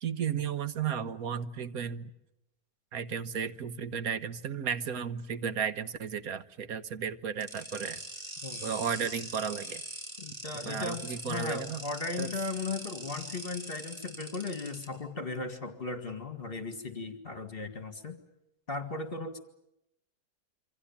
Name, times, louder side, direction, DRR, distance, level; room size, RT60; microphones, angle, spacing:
voice 1, 0.0-2.1 2.9-8.0 8.6-9.8 10.7-11.8 12.2-12.3, right 7 dB, 75° right, 12 dB, 1.6 m, -34 dB
sound 1, 7.4-14.8, equal, 15° right, 7.8 m, -42 dB
voice 2, 10.2-18.2 18.7-19.4, left 3 dB, 40° left, 8 dB, 2.2 m, -37 dB
27.5 x 25.0 x 7.2 m, 0.84 s
omnidirectional pair, 1.6 m